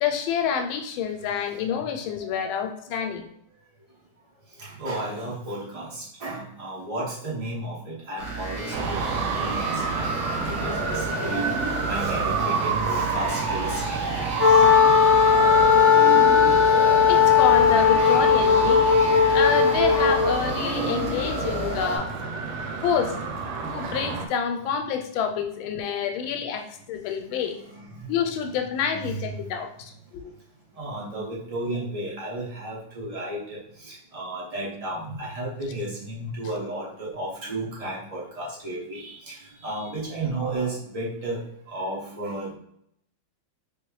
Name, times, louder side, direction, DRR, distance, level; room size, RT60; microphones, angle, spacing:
voice 1, 0.0-3.2 17.1-18.8 19.3-22.2 22.8-23.2 23.6-27.6 28.1-29.7 30.1-30.3, left 7 dB, 90° left, 6 dB, 1.4 m, -27 dB
voice 2, 1.4-1.8 2.1-2.3 2.8-3.0 4.4-15.5 18.0-18.1 20.6-20.7 22.6-22.8 23.0-23.2 25.3-25.4 26.2-26.3 26.9-27.1 27.5-28.1 28.9-29.5 30.0-30.3 30.7-42.5, right 1 dB, 25° right, -5 dB, 0.8 m, -34 dB
sound 1, 8.2-22.0, right 3 dB, 55° right, 1.5 m, -32 dB
Traffic noise roadway noise, 8.7-24.3, right 4 dB, 80° right, 1.4 m, -29 dB
Wind instrument woodwind instrument, 14.4-20.3, left 7 dB, 25° left, 0.6 m, -17 dB
3.6 x 2.8 x 3.1 m, 0.71 s
omnidirectional pair, 2.1 m